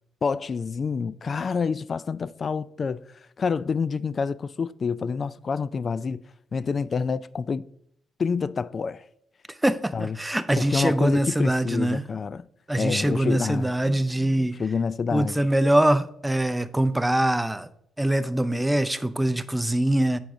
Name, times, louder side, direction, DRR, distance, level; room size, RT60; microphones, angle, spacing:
voice 1, 0.2-3.0 3.4-6.2 6.5-7.6 8.2-9.0 9.9-10.2 10.6-12.4 12.8-13.7 14.6-15.3, left 5 dB, 45° left, 0.3 m, -27 dB
voice 2, 9.5-12.1 12.7-14.6 15.1-17.7 18.0-20.2, right 1 dB, 10° right, 0.5 m, -23 dB
8.4 x 6.1 x 2.6 m
supercardioid pair, 60°, 0 cm